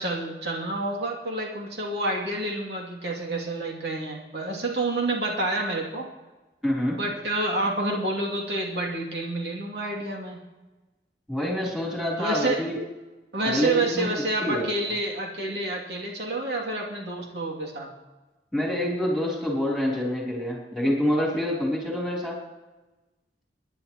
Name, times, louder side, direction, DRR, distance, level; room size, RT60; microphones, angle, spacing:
voice 1, 0.0-6.1 6.9-10.4 12.2-12.7 13.3-17.9, right 2 dB, 70° right, -2 dB, 2.7 m, -28 dB
voice 2, 6.6-7.0 11.3-12.8 13.4-14.1 14.4-14.7 18.5-22.4, left 1 dB, ahead, -4 dB, 3.4 m, -26 dB
27.0 x 10.5 x 3.0 m, 1.1 s
head